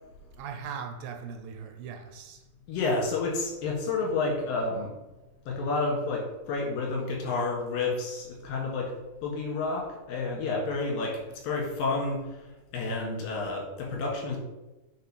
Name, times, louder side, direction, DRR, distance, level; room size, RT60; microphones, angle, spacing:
voice 1, 0.4-2.4, right 6 dB, 80° right, 2.3 m, -39 dB
voice 2, 2.7-4.9 5.5-8.9 9.2-11.2 11.4-12.4 12.7-14.4, left 3 dB, 70° left, 3.2 m, -30 dB
6.6 x 4.7 x 5.5 m
omnidirectional pair, 4.3 m